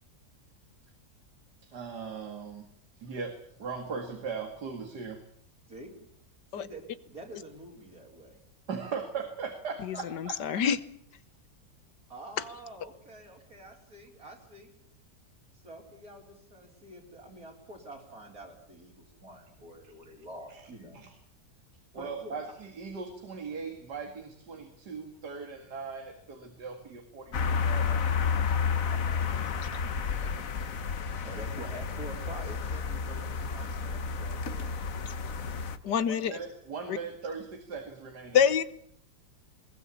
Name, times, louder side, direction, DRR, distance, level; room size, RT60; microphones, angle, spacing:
voice 1, 1.7-2.7 3.0-5.2 8.7-10.6 20.5-20.6 20.9-21.1 21.9-28.0 36.1-38.4, right 5 dB, 75° right, 2.7 m, -39 dB
voice 2, 6.5-8.4 12.1-14.7 15.6-21.0 22.0-22.4 28.9-29.3 29.7-30.3 30.8-34.8, right 1 dB, 60° right, 4.9 m, -47 dB
voice 3, 9.8-10.8 35.8-36.4 36.9-37.0 38.3-38.6, left 8 dB, 90° left, 1.7 m, -26 dB
sound 1, 27.3-35.8, left 6 dB, 55° left, 1.5 m, -31 dB
20.5 x 20.5 x 8.5 m
omnidirectional pair, 1.8 m